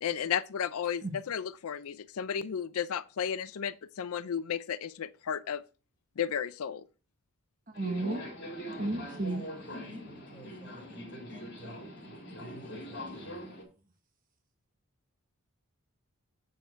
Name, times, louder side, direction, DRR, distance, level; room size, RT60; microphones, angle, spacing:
voice 1, 0.0-5.6 6.2-6.8, left 8 dB, 80° left, 0.4 m, -33 dB
Subway metro underground, 7.7-13.6, equal, 50° left, 3.8 m, -42 dB
voice 2, 7.7-8.2 8.8-9.4, right 2 dB, 40° right, 1.1 m, -33 dB
voice 3, 9.0-13.4, right 2 dB, 5° left, 4.8 m, -52 dB
8.2 x 6.5 x 4.5 m
head